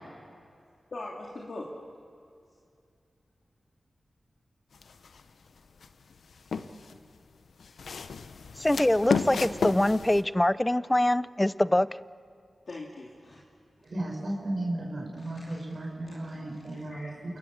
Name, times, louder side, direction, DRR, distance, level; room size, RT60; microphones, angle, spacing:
voice 1, 0.9-1.7 12.7-13.4 15.2-15.6 16.1-16.2 16.9-17.2, left 2 dB, 60° left, -3 dB, 2.9 m, -41 dB
sound 1, 4.7-5.2 5.8-7.0 7.6-10.2, left 5 dB, 85° left, 0.9 m, -32 dB
voice 2, 8.6-11.9, left 1 dB, 15° left, 17 dB, 0.6 m, -24 dB
voice 3, 13.8-17.1, right 1 dB, 60° right, -2 dB, 5.6 m, -34 dB
29.0 x 19.0 x 7.4 m, 2.4 s
cardioid pair, 65°, 0 cm